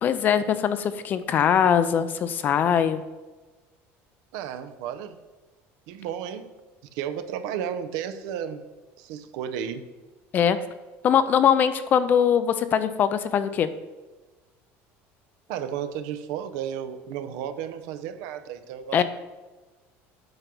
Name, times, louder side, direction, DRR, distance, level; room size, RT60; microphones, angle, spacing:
voice 1, 0.0-3.0 10.3-10.6 11.0-13.7 18.9-19.0, left 8 dB, 30° left, 12 dB, 0.4 m, -21 dB
voice 2, 4.3-5.2 5.9-6.5 6.9-8.6 9.0-9.9 15.5-19.0, right 9 dB, 75° right, 9 dB, 0.7 m, -33 dB
8.0 x 5.3 x 6.0 m, 1.2 s
cardioid pair, 165°, 6 cm